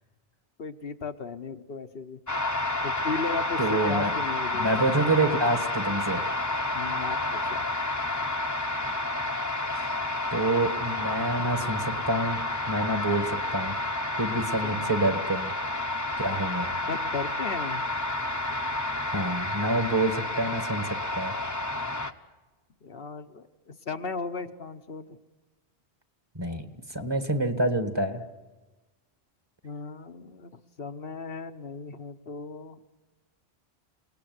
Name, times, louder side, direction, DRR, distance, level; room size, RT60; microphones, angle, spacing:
voice 1, 0.6-2.2 2.8-4.8 6.7-7.7 14.3-14.9 16.9-17.9 22.8-25.2 29.6-32.8, left 4 dB, 65° left, 7 dB, 1.2 m, -36 dB
sound 1, 2.3-22.1, left 2 dB, 20° left, 1.0 m, -30 dB
voice 2, 3.6-4.1 4.5-6.3 9.7-10.0 10.3-12.4 12.7-13.8 14.2-15.5 16.2-16.7 19.1-21.4 26.4-28.2, right 2 dB, 25° right, 7 dB, 1.8 m, -27 dB
28.5 x 19.0 x 9.5 m, 1.2 s
omnidirectional pair, 1.1 m